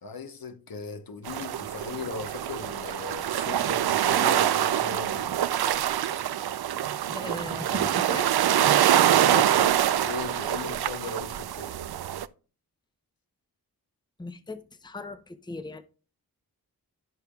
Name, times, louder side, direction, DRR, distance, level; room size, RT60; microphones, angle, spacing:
voice 1, 0.0-5.4 9.0-11.8, left 4 dB, 60° left, 1.1 m, -38 dB
sound 1, 1.2-12.3, right 11 dB, 70° right, 0.5 m, -25 dB
voice 2, 7.1-8.3 14.2-15.8, left 2 dB, 10° left, 0.7 m, -38 dB
15.0 x 5.4 x 2.3 m
wide cardioid pair, 70°, 39 cm